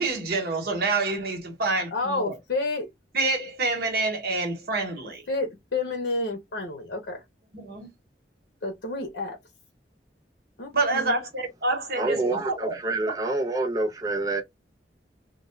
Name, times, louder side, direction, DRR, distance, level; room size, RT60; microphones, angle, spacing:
voice 1, 0.0-2.3 3.1-5.2 7.5-7.9 10.7-12.7 13.1-13.2, right 3 dB, 60° right, 1.0 m, -27 dB
voice 2, 1.9-2.9 5.3-7.2 8.6-9.4 10.6-11.2, left 2 dB, 75° left, 0.7 m, -30 dB
voice 3, 12.0-14.4, right 2 dB, 20° right, 0.5 m, -27 dB
2.2 x 2.1 x 3.0 m
head